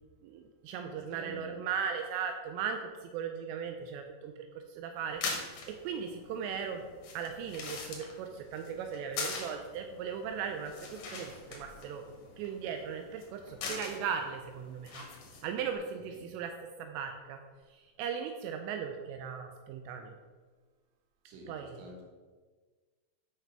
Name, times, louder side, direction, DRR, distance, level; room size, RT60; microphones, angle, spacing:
voice 1, 0.2-4.3 4.7-5.2 5.8-6.8 7.2-12.0 12.4-15.1 15.4-16.5 16.8-17.4 18.0-20.2 21.5-21.7, right 7 dB, 85° right, 4 dB, 2.7 m, -37 dB
voice 2, 0.8-1.6 15.9-16.3 21.2-22.1, right 1 dB, 65° right, 0 dB, 2.6 m, -50 dB
sound 1, 5.0-15.7, left 4 dB, 75° left, 1.9 m, -43 dB
8.3 x 5.8 x 3.4 m, 1.4 s
omnidirectional pair, 5.0 m